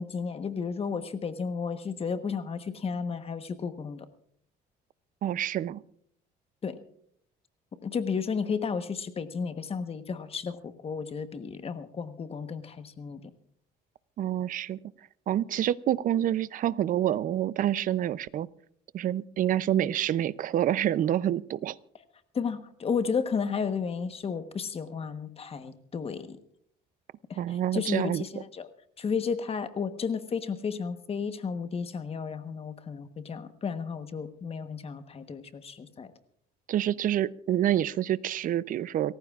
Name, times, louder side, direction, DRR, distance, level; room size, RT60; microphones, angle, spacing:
voice 1, 0.0-4.1 6.6-6.8 7.8-13.3 22.3-26.4 27.3-28.7 29.0-36.1, left 5 dB, 35° left, 10 dB, 1.2 m, -33 dB
voice 2, 5.2-5.8 14.2-14.8 15.3-18.5 18.9-21.8 27.4-28.2 36.7-39.2, right 11 dB, 55° right, 18 dB, 0.5 m, -27 dB
29.5 x 14.5 x 2.4 m, 0.64 s
cardioid pair, 110°, 17 cm